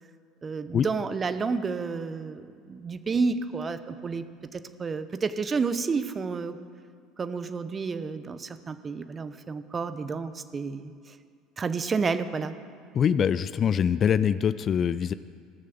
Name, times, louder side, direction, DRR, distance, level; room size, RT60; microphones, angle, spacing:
voice 1, 0.4-4.2 4.5-6.6 7.2-11.1 11.6-12.5, right 4 dB, 30° right, 12 dB, 0.8 m, -30 dB
voice 2, 12.9-15.1, left 8 dB, 40° left, 15 dB, 0.4 m, -24 dB
16.0 x 6.6 x 7.0 m, 2.2 s
hypercardioid pair, 70°, 0 cm